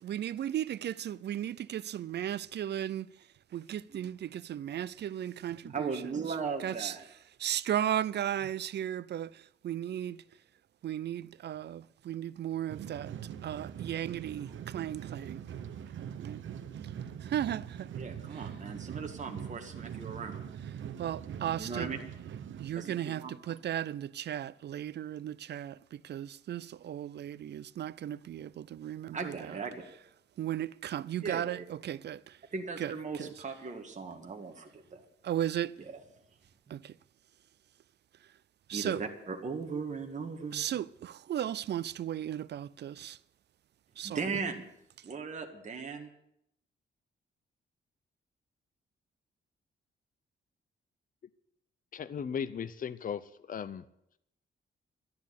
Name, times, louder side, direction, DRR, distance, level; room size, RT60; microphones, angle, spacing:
voice 1, 0.0-3.1 3.5-5.9 6.4-6.9 7.4-10.2 10.8-13.1 13.4-15.4 16.2-16.4 17.2-17.9 21.0-21.9 22.6-29.6 30.4-32.4 32.8-32.9 33.2-33.3 35.2-35.7 36.7-36.9 38.7-39.0 40.5-43.2 44.0-44.2, right 11 dB, 60° right, 0.5 m, -35 dB
voice 2, 5.6-7.0 17.9-20.4 21.6-22.0 22.8-23.4 29.1-29.8 31.2-31.6 32.5-35.0 35.8-36.0 38.7-40.6 44.0-44.7 45.0-46.1, right 5 dB, 35° right, 1.8 m, -38 dB
sound 1, 12.7-22.7, right 9 dB, 75° right, 0.9 m, -42 dB
voice 3, 51.9-53.8, left 7 dB, 45° left, 0.7 m, -37 dB
12.5 x 10.5 x 8.3 m
wide cardioid pair, 130°, 20 cm